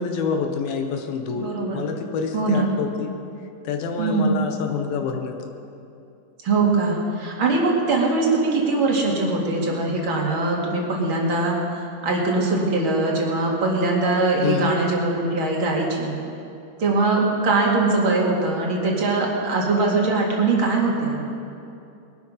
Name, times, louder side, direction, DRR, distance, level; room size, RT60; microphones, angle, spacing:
voice 1, 0.0-3.1 3.6-5.5 14.4-14.8, left 5 dB, 80° left, 5 dB, 2.9 m, -27 dB
voice 2, 1.3-1.8 2.3-2.7 4.0-4.3 6.4-11.6 12.0-16.2 16.8-21.2, right 3 dB, 40° right, -2 dB, 2.7 m, -21 dB
21.5 x 11.5 x 5.7 m, 2.7 s
omnidirectional pair, 4.2 m